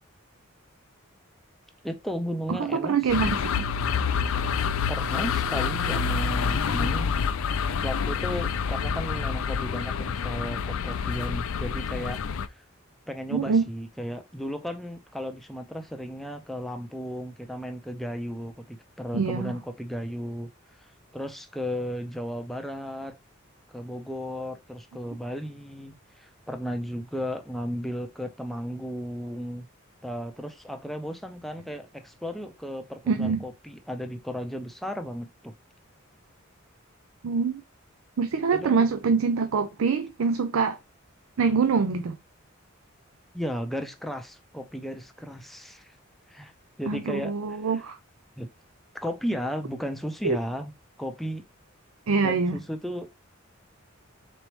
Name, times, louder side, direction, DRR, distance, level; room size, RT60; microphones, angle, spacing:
voice 1, 1.8-3.3 4.9-7.1 7.8-12.6 13.1-23.2 23.7-29.7 30.0-35.5 38.5-38.9 43.3-45.9 46.3-46.5 46.8-47.3 48.4-48.5 48.9-50.7 51.0-51.4 52.2-53.1, equal, ahead, 0.5 m, -34 dB
voice 2, 2.5-3.4 13.3-13.7 19.1-19.6 33.1-33.4 37.2-37.6 38.2-40.8 41.4-42.2 46.9-48.0 50.2-50.4 52.1-52.6, right 5 dB, 85° right, 0.4 m, -24 dB
sound 1, 3.1-12.5, left 6 dB, 85° left, 0.4 m, -27 dB
4.1 x 3.1 x 3.1 m
head